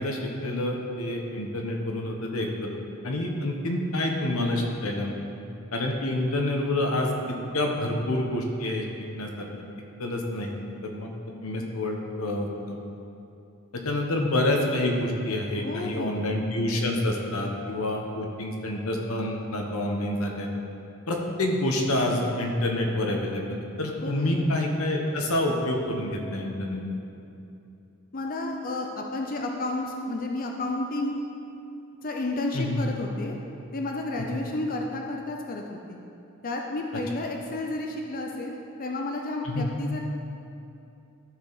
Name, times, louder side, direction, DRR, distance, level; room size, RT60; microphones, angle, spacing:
voice 1, 0.0-2.8 3.0-5.2 5.7-8.8 9.2-9.3 10.0-11.1 11.4-12.8 13.8-20.5 21.1-26.8 32.5-32.8 39.4-39.7, left 1 dB, 90° left, 1 dB, 1.0 m, -28 dB
voice 2, 15.6-16.5 24.0-24.5 28.1-31.2 32.0-33.3 33.7-36.0 36.4-40.0, left 2 dB, 40° left, 1 dB, 0.6 m, -32 dB
13.0 x 4.7 x 4.0 m, 2.7 s
head